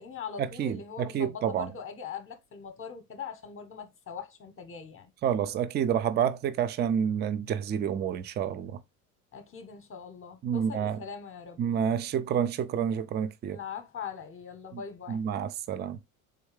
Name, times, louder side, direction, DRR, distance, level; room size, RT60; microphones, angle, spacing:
voice 1, 0.0-5.1 9.3-11.6 13.5-15.2, left 6 dB, 30° left, 0.9 m, -41 dB
voice 2, 0.6-1.7 5.2-8.8 10.4-11.0 11.6-13.6 14.7-14.8 15.1-16.0, right 8 dB, 25° right, 0.4 m, -29 dB
3.7 x 3.1 x 3.2 m
hypercardioid pair, 85°, 43 cm